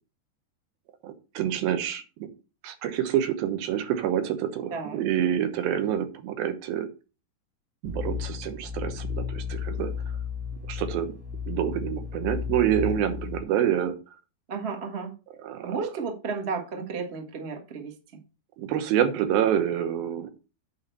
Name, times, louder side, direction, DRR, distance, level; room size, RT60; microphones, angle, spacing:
voice 1, 1.0-2.3 2.6-6.9 7.8-9.9 10.7-11.1 11.5-14.0 15.4-15.7 18.6-20.3, right 10 dB, 75° right, 9 dB, 2.9 m, -27 dB
voice 2, 4.7-5.0 14.5-15.1 15.6-17.9, right 5 dB, 50° right, 2 dB, 0.7 m, -33 dB
sound 1, 7.8-13.4, left 7 dB, 25° right, 2.1 m, -33 dB
8.7 x 4.2 x 6.9 m, 0.32 s
omnidirectional pair, 4.4 m